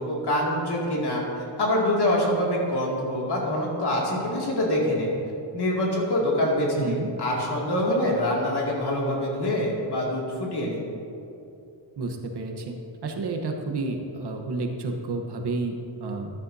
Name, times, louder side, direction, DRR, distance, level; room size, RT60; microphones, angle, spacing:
voice 1, 0.0-5.1 5.5-10.8, left 1 dB, 60° left, -3 dB, 2.4 m, -25 dB
voice 2, 6.8-7.1 12.0-12.8 13.0-16.3, right 3 dB, 60° right, 3 dB, 1.1 m, -30 dB
13.5 x 11.0 x 2.7 m, 2.7 s
wide cardioid pair, 150°, 46 cm